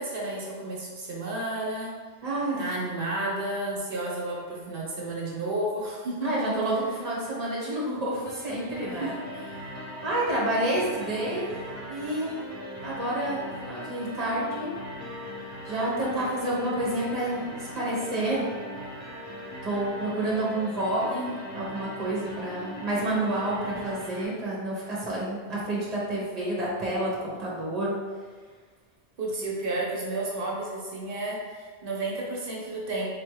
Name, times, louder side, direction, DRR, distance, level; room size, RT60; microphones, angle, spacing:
voice 1, 0.0-1.9 2.6-6.4 9.0-9.1 29.2-33.1, right 2 dB, 60° right, -4 dB, 0.9 m, -32 dB
voice 2, 2.2-2.6 6.2-9.1 10.0-12.3 12.8-14.7 15.6-18.5 19.6-21.3 21.5-27.9, right 1 dB, 40° right, -6 dB, 1.2 m, -29 dB
sound 1, 8.2-24.2, equal, 20° left, 0.6 m, -39 dB
3.6 x 3.2 x 3.1 m, 1.5 s
omnidirectional pair, 1.1 m